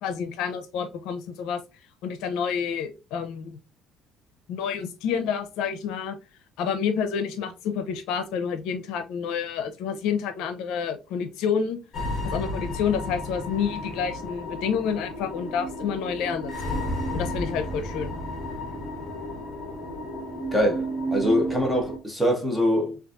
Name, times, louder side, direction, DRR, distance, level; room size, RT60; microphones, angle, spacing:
voice 1, 0.0-1.6 2.0-3.6 4.5-6.2 6.6-11.8 12.2-16.8 17.1-18.1, left 7 dB, 75° left, 0.5 m, -29 dB
sound 1, 11.9-22.0, equal, 30° left, 0.8 m, -32 dB
voice 2, 20.5-23.0, equal, 5° right, 0.7 m, -24 dB
3.9 x 2.4 x 2.4 m
cardioid pair, 170°, 0 cm